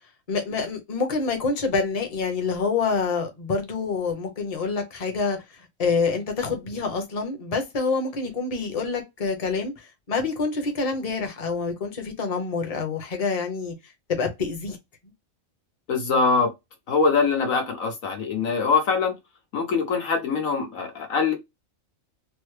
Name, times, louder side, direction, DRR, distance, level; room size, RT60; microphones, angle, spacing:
voice 1, 0.3-5.4 5.8-9.7 10.1-13.7 14.1-14.8, left 4 dB, 35° left, 0.8 m, -26 dB
voice 2, 15.9-16.5 16.9-19.1 19.5-21.3, left 4 dB, 80° left, 1.5 m, -23 dB
3.3 x 2.1 x 3.1 m
omnidirectional pair, 1.4 m